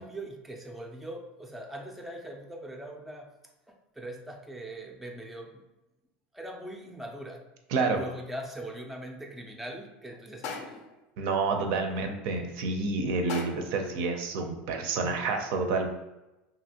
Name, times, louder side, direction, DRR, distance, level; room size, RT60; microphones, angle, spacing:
voice 1, 0.0-3.3 3.7-5.6 6.3-7.4 7.9-10.8 11.7-12.0 14.9-15.2, right 1 dB, 5° right, 1 dB, 0.3 m, -41 dB
voice 2, 7.7-8.0 11.2-15.9, right 4 dB, 65° right, 5 dB, 0.5 m, -29 dB
sound 1, 10.4-11.0 13.3-13.8, left 5 dB, 60° left, 0.4 m, -38 dB
2.8 x 2.5 x 2.7 m, 1.0 s
supercardioid pair, 120°, 5 cm